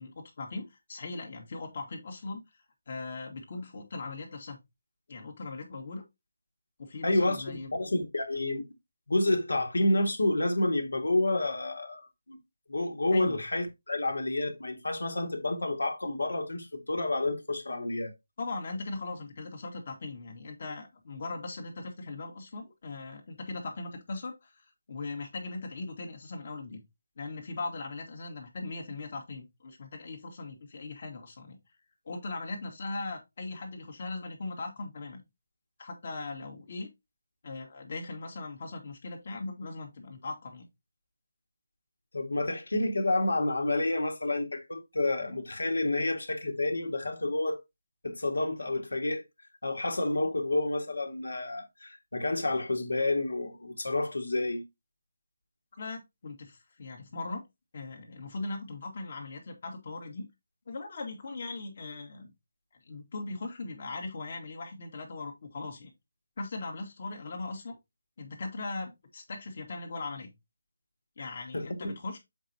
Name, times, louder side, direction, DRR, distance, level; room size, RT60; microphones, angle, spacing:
voice 1, 0.0-4.6 5.1-6.0 6.8-7.7 13.1-13.4 18.4-26.8 27.2-31.6 32.1-35.2 35.8-36.9 37.4-40.6 55.8-57.4 57.7-60.2 60.7-62.3 62.9-65.9 66.4-67.8 68.2-70.3 71.2-72.2, left 3 dB, 45° left, 1.8 m, -39 dB
voice 2, 7.0-8.6 9.1-12.4 12.7-18.1 42.1-47.6 48.0-49.2 49.6-54.6 71.2-71.3 71.5-71.9, left 2 dB, 75° left, 1.9 m, -29 dB
7.3 x 5.1 x 2.8 m
figure-of-eight pair, 155°, 0 cm